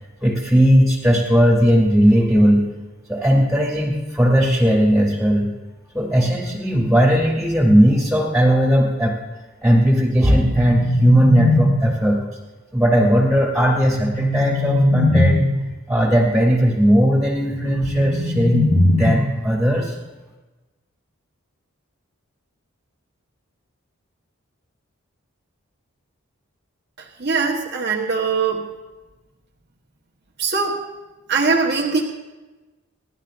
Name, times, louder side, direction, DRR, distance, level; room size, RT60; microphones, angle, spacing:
voice 1, 0.2-2.6 3.1-5.5 5.9-9.2 9.6-12.2 12.7-15.4 15.9-18.7 19.0-19.9, equal, ahead, -3 dB, 2.3 m, -17 dB
sound 1, 10.1-12.1 13.8-15.7 17.5-19.5, left 1 dB, 85° left, 5.5 m, -20 dB
voice 2, 27.2-28.7 30.4-30.8 31.3-32.0, right 4 dB, 50° right, -1 dB, 1.2 m, -21 dB
28.0 x 11.5 x 2.5 m, 1.2 s
head